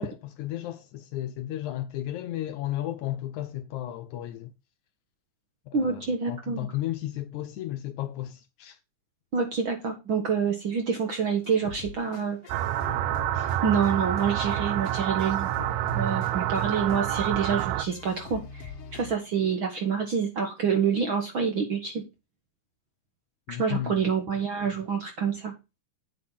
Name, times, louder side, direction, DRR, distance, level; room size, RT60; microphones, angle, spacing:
voice 1, 0.0-4.5 5.7-8.8 23.5-24.1, left 13 dB, 80° left, 1.8 m, -34 dB
voice 2, 5.7-6.7 9.3-12.4 13.3-15.5 15.9-22.0 23.5-25.5, right 6 dB, 60° right, 1.3 m, -27 dB
sound 1, 11.1-19.1, left 6 dB, 55° left, 1.8 m, -43 dB
sound 2, 12.5-17.8, right 13 dB, 75° right, 1.8 m, -28 dB
8.5 x 5.3 x 5.5 m
omnidirectional pair, 4.0 m